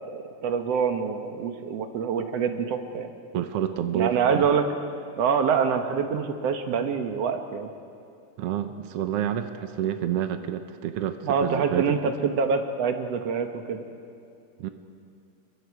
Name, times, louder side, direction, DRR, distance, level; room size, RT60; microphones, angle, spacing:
voice 1, 0.0-3.1 3.9-4.6 5.2-7.7 11.2-13.8, right 6 dB, 60° right, 6 dB, 2.0 m, -25 dB
voice 2, 3.3-4.5 8.4-12.3 14.6-14.7, right 10 dB, 80° right, 8 dB, 1.3 m, -29 dB
29.5 x 23.0 x 4.8 m, 2.5 s
omnidirectional pair, 3.8 m